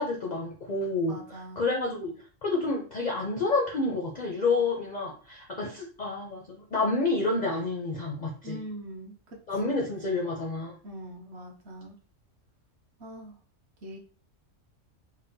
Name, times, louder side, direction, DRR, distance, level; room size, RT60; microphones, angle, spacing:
voice 1, 0.0-2.2 2.4-8.6 9.5-10.8, left 3 dB, 55° left, -1 dB, 0.5 m, -29 dB
voice 2, 1.1-1.6 8.4-9.1 9.6-9.7 10.1-10.2 10.8-11.9 13.0-13.3 13.8-14.0, right 1 dB, 60° right, 0 dB, 1.0 m, -42 dB
4.0 x 2.1 x 2.6 m, 0.39 s
omnidirectional pair, 1.3 m